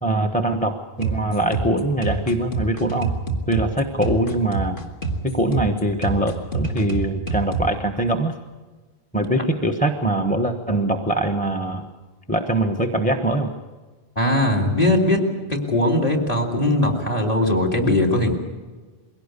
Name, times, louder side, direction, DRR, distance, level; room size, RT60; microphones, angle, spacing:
voice 1, 0.0-3.1 3.5-4.8 5.3-8.3 9.1-11.9 12.3-13.5, right 1 dB, 10° left, 6 dB, 1.1 m, -22 dB
sound 1, 1.0-7.7, right 3 dB, 55° left, 2.4 m, -27 dB
voice 2, 14.2-15.2 15.5-18.3, left 1 dB, 35° left, 4 dB, 3.6 m, -20 dB
22.5 x 17.5 x 8.2 m, 1.3 s
omnidirectional pair, 1.1 m